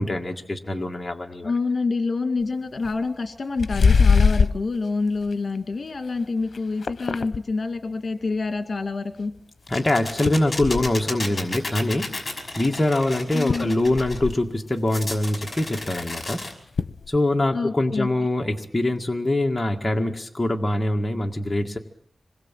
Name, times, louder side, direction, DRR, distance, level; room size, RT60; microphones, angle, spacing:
voice 1, 0.0-1.5 9.7-12.2 12.6-16.5 17.1-21.8, left 1 dB, 20° left, 1 dB, 1.9 m, -24 dB
voice 2, 1.4-9.3 13.3-13.7 17.5-18.1, left 3 dB, 55° left, 7 dB, 2.3 m, -27 dB
sound 1, 2.4-2.5 2.8-3.1 3.6-4.6 5.2-5.6 6.0-6.2 6.5-7.5 9.4-9.5 10.2-11.0 12.5-12.6 13.0-13.1 13.3-14.4 16.2-16.3 16.8-17.2, left 5 dB, 75° left, 0.9 m, -22 dB
sound 2, 9.7-14.2 14.9-16.5, left 2 dB, 35° left, 5.8 m, -32 dB
26.5 x 21.0 x 7.5 m, 0.67 s
wide cardioid pair, 100°, 0 cm